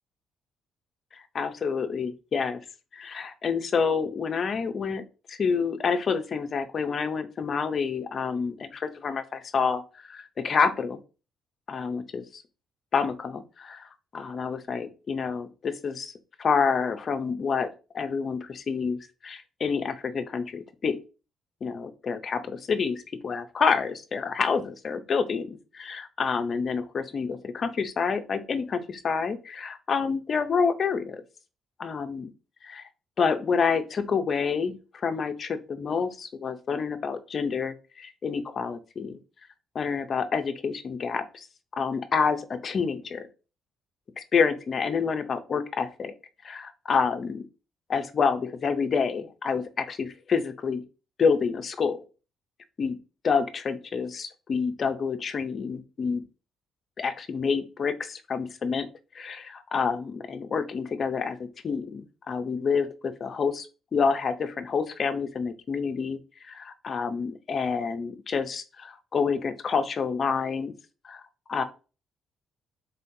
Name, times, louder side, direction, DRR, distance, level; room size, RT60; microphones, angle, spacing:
voice 1, 1.1-2.6 2.9-5.0 5.3-11.0 11.7-12.4 12.9-13.9 14.1-16.1 16.4-17.7 17.9-19.0 19.2-21.0 21.6-31.2 31.8-32.3 32.6-32.8 33.2-39.2 39.7-41.5 41.7-43.3 44.3-46.1 46.4-47.4 47.9-50.8 51.2-52.0 52.8-53.0 53.2-56.2 57.0-58.9 59.1-63.7 63.9-66.2 66.4-70.7 71.0-71.2 71.5-71.6, left 5 dB, 50° left, 9 dB, 0.6 m, -28 dB
4.2 x 3.8 x 2.7 m, 0.33 s
cardioid pair, 90°, 0 cm